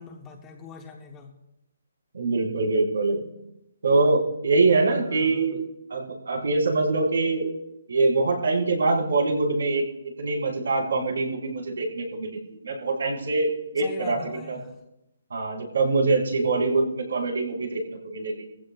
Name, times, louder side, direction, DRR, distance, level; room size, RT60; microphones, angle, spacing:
voice 1, 0.0-1.3 5.0-5.6 13.8-14.7, left 5 dB, 10° left, 3 dB, 0.9 m, -42 dB
voice 2, 2.1-3.2 3.8-5.6 5.9-7.5 7.9-9.9 10.2-14.6 15.3-18.5, right 3 dB, 85° right, 0 dB, 4.4 m, -24 dB
21.0 x 15.5 x 2.3 m, 0.86 s
hypercardioid pair, 180°, 0 cm